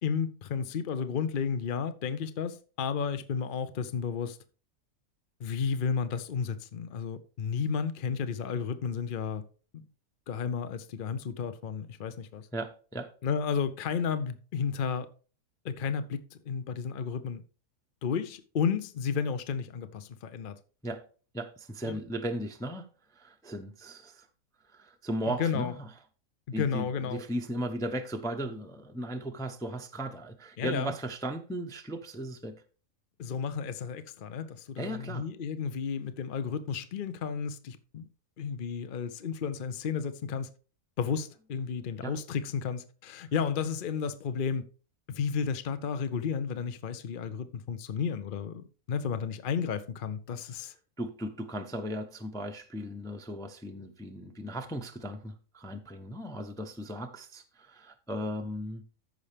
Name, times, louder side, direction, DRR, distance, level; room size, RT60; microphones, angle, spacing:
voice 1, 0.0-4.4 5.4-9.4 9.7-9.8 10.3-12.5 13.2-15.1 15.6-17.4 18.0-20.6 21.8-22.0 25.3-25.7 26.5-27.2 30.6-30.9 33.2-38.1 38.4-40.5 41.0-44.6 45.1-50.7, left 6 dB, 50° left, 0.7 m, -32 dB
voice 2, 12.5-13.1 20.8-21.1 21.3-22.9 23.1-24.3 24.7-25.9 26.5-32.6 34.8-35.2 42.0-42.1 50.4-50.5 51.0-58.8, right 1 dB, 5° left, 0.6 m, -36 dB
14.0 x 5.5 x 3.4 m
omnidirectional pair, 1.5 m